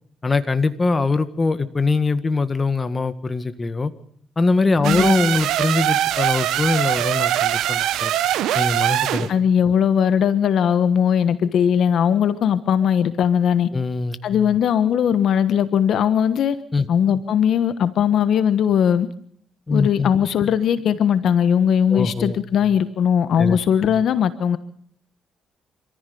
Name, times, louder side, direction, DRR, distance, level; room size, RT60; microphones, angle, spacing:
voice 1, 0.2-3.9 4.4-8.1 8.6-9.3 13.7-14.2 16.7-16.9 19.7-20.1 21.9-22.4 23.4-23.6, left 3 dB, 25° left, 11 dB, 1.6 m, -22 dB
sound 1, 4.8-9.3, right 12 dB, 85° right, 0.9 m, -22 dB
voice 2, 9.3-13.7 14.2-16.6 16.9-19.1 19.7-24.6, left 8 dB, 70° left, 13 dB, 1.2 m, -19 dB
27.0 x 14.5 x 7.0 m, 0.63 s
cardioid pair, 90°, 0 cm